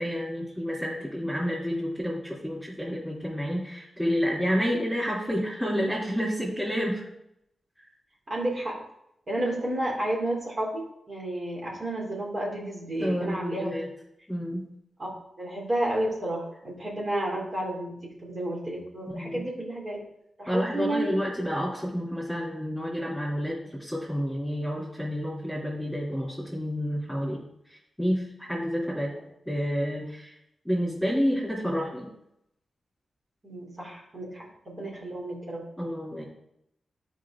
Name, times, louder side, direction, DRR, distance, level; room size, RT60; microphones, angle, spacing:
voice 1, 0.0-7.1 13.0-13.9 14.3-14.7 19.1-19.4 20.5-27.4 28.0-29.1 29.4-30.3 30.6-32.1 35.8-36.2, equal, ahead, -8 dB, 3.1 m, -29 dB
voice 2, 8.3-8.8 9.3-13.8 15.0-15.1 15.4-20.0 20.4-21.1 33.4-35.6, right 1 dB, 40° right, -3 dB, 3.1 m, -31 dB
13.0 x 5.4 x 3.7 m, 0.77 s
wide cardioid pair, 95°, 0 cm